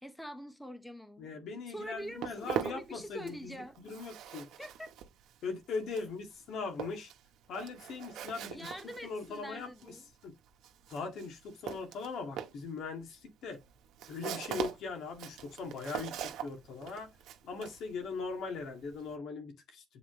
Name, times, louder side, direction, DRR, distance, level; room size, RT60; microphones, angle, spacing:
voice 1, 0.0-1.3 1.7-3.7 4.6-4.9 8.4-10.0, equal, 5° left, 1.2 m, -45 dB
voice 2, 1.2-4.5 5.4-7.1 7.5-8.7 9.0-9.7 10.2-10.3 10.9-13.6 14.1-17.1 17.4-20.0, left 4 dB, 80° left, 2.1 m, -40 dB
Walk footsteps, 1.8-3.5 3.7-19.1, right 10 dB, 85° right, 1.1 m, -42 dB
7.5 x 4.2 x 3.1 m
cardioid pair, 90°, 0 cm